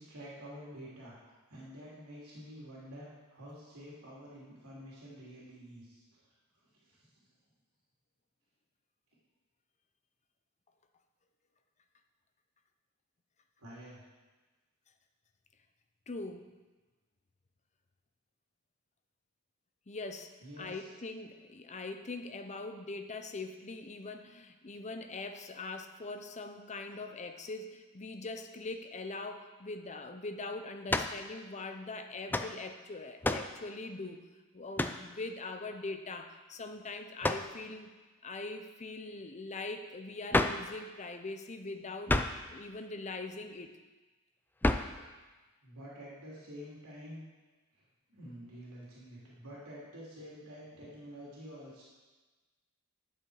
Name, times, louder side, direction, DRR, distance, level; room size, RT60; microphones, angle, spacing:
voice 1, 0.0-6.2 6.6-7.1 13.6-14.0 20.4-20.9 45.6-47.2 47.7-47.8 48.1-51.8, equal, 90° right, -6 dB, 2.9 m, -49 dB
voice 2, 16.1-16.5 19.9-34.2 34.5-37.9 38.2-43.7, left 3 dB, 30° left, 7 dB, 0.7 m, -42 dB
sound 1, 30.9-31.2 32.3-32.5 33.2-33.5 34.8-35.0 37.2-37.5 40.3-40.7 42.1-42.5 44.6-45.0, left 2 dB, 10° left, 0.4 m, -29 dB
11.5 x 8.0 x 4.8 m, 1.2 s
head